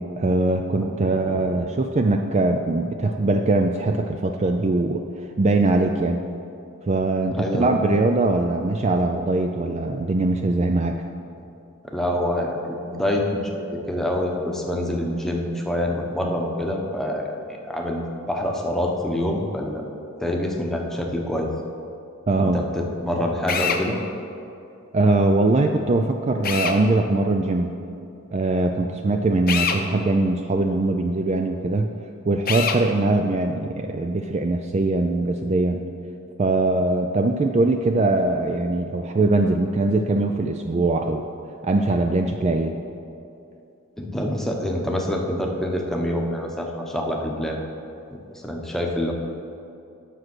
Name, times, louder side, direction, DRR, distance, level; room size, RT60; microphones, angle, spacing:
voice 1, 0.2-6.2 6.9-11.0 22.3-22.6 24.9-27.7 28.3-31.9 32.3-35.8 36.4-41.2 41.6-42.7, right 2 dB, 30° right, 4 dB, 0.4 m, -21 dB
voice 2, 0.8-1.6 7.3-7.8 11.9-17.4 17.7-18.0 18.3-19.8 20.2-21.5 22.4-24.0 44.0-47.6 48.3-49.1, left 1 dB, ahead, 0 dB, 0.9 m, -26 dB
Drill, 23.5-23.8 26.4-26.8 29.5-29.8 32.5-32.8, left 6 dB, 45° left, 0.7 m, -24 dB
10.0 x 6.4 x 6.1 m, 2.7 s
head